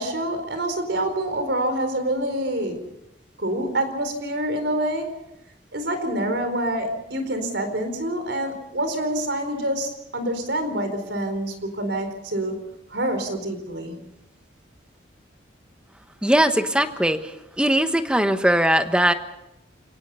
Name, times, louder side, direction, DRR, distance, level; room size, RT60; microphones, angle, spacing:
voice 1, 0.0-2.9 3.4-5.2 5.7-14.0, right 1 dB, 70° right, 8 dB, 4.3 m, -27 dB
voice 2, 16.2-17.3 17.6-19.1, right 1 dB, 5° right, 8 dB, 1.2 m, -20 dB
29.0 x 18.5 x 5.6 m, 0.86 s
head